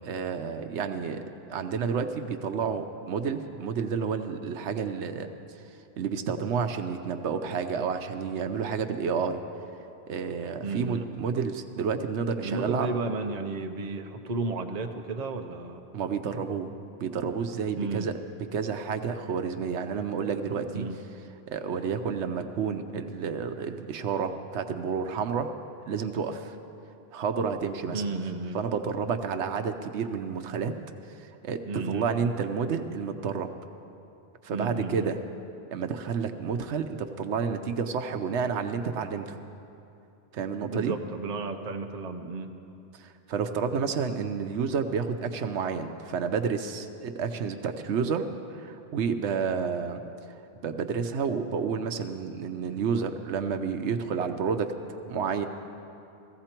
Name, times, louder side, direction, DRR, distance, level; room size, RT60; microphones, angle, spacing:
voice 1, 0.0-1.2 1.5-5.3 6.0-9.4 10.1-12.9 15.9-16.7 17.0-18.1 18.5-20.8 21.5-25.5 25.9-26.6 27.1-28.0 28.5-30.7 31.2-33.5 34.4-35.2 35.7-39.4 40.3-41.0 42.9-48.3 48.5-50.0 50.3-50.4 50.6-55.5, right 6 dB, 85° right, 7 dB, 1.0 m, -30 dB
voice 2, 10.6-11.1 12.4-15.8 17.8-18.1 20.7-21.0 27.9-28.6 31.7-32.1 34.5-35.1 40.6-42.5, right 3 dB, 40° right, 4 dB, 0.8 m, -33 dB
16.0 x 15.5 x 4.4 m, 2.7 s
omnidirectional pair, 1.1 m